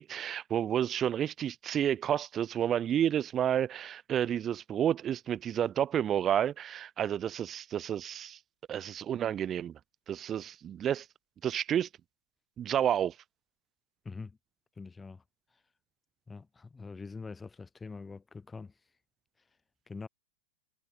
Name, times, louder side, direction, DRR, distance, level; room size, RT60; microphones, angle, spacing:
voice 1, 0.0-8.4 8.7-9.7 10.1-11.1 11.4-11.9 12.6-13.1, right 10 dB, 25° right, 0.6 m, -30 dB
voice 2, 14.0-14.4 14.8-15.2 16.3-18.7 19.9-20.1, left 4 dB, 15° left, 1.3 m, -44 dB
figure-of-eight pair, 90°, 0 cm